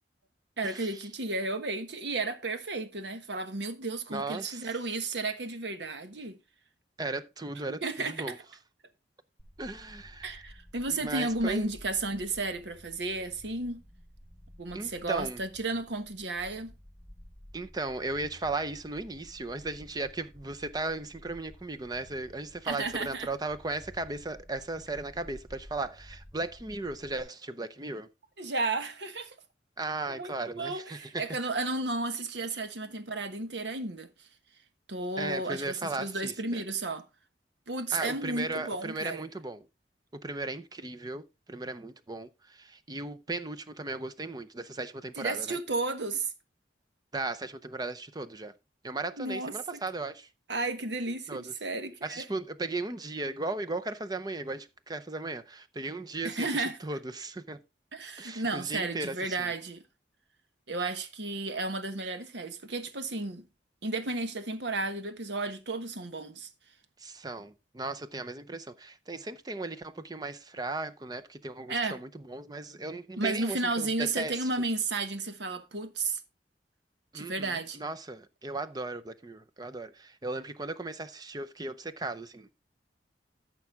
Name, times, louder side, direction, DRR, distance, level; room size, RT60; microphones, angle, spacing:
voice 1, 0.6-6.4 7.8-8.3 10.2-13.8 14.6-16.7 22.6-23.3 28.4-29.3 30.1-34.1 34.9-37.0 37.7-39.2 45.2-46.3 49.2-49.5 50.5-52.2 56.2-56.8 57.9-59.8 60.7-63.4 63.8-66.5 71.7-72.0 73.2-76.2 77.1-77.8, right 3 dB, 80° right, 1.3 m, -33 dB
voice 2, 4.1-4.7 7.0-8.4 9.6-10.4 10.9-11.7 14.7-15.4 17.5-28.1 29.8-31.2 35.2-36.6 37.9-39.7 40.1-45.6 47.1-48.5 48.8-50.3 51.3-51.5 52.0-57.6 58.2-59.5 67.0-74.5 77.1-82.5, right 2 dB, 25° right, 0.6 m, -36 dB
sound 1, 9.4-27.2, equal, 10° left, 3.1 m, -53 dB
14.0 x 5.9 x 3.6 m
head